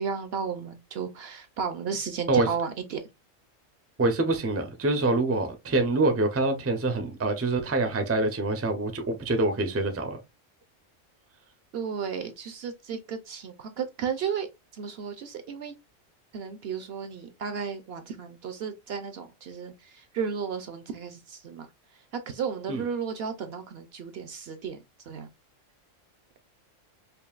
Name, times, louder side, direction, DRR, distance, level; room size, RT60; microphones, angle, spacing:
voice 1, 0.0-3.0 11.7-14.5 14.7-15.7 16.3-21.7 22.1-24.8 25.1-25.3, right 6 dB, 60° right, 0.8 m, -34 dB
voice 2, 4.0-10.2 22.7-22.8, right 2 dB, 20° right, 0.4 m, -25 dB
5.2 x 2.5 x 2.4 m
omnidirectional pair, 1.3 m